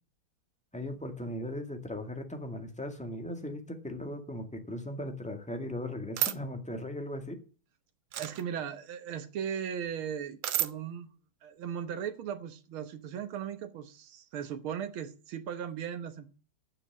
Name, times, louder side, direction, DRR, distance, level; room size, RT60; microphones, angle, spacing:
voice 1, 0.7-7.4, left 1 dB, 5° left, 5 dB, 1.7 m, -38 dB
sound 1, 6.2-6.4 8.1-8.4 10.4-10.7, right 13 dB, 70° right, 1.4 m, -30 dB
voice 2, 8.2-11.1 11.4-16.3, right 8 dB, 85° right, 9 dB, 2.0 m, -37 dB
9.6 x 6.9 x 8.5 m, 0.37 s
omnidirectional pair, 2.2 m